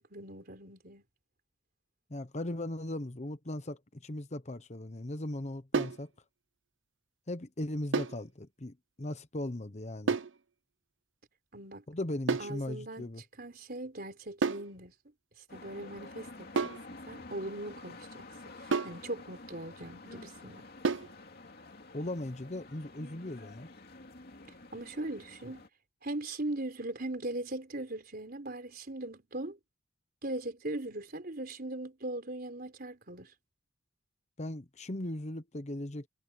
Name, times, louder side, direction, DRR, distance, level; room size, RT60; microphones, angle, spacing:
voice 1, 0.1-1.0 11.5-11.8 12.4-13.1 13.4-14.9 15.5-16.5 16.9-20.6 24.7-25.6 26.0-29.6 30.2-33.3, right 1 dB, 50° right, 4.2 m, -40 dB
voice 2, 2.1-6.1 7.3-10.2 11.9-13.2 21.9-23.7 34.4-36.1, left 1 dB, 35° left, 1.0 m, -38 dB
sound 1, 5.7-6.0 7.9-8.2 10.1-10.4 12.3-12.6 14.4-14.7 16.6-16.9 18.7-19.0 20.8-21.1, right 4 dB, 75° right, 0.7 m, -30 dB
sound 2, 15.5-25.7, left 2 dB, 50° left, 2.7 m, -50 dB
head